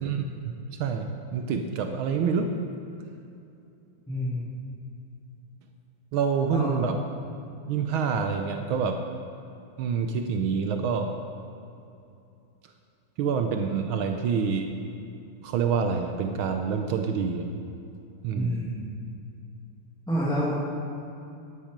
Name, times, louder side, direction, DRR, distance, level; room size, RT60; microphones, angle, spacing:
voice 1, 0.0-2.6 6.1-7.0 7.7-9.1 9.8-11.2 13.2-14.8 15.4-17.5 18.2-18.6, right 6 dB, 75° right, 5 dB, 1.5 m, -27 dB
voice 2, 4.1-4.5 6.5-6.7 18.3-18.8 20.1-20.6, equal, ahead, -8 dB, 2.0 m, -28 dB
13.0 x 10.5 x 5.2 m, 2.7 s
omnidirectional pair, 2.4 m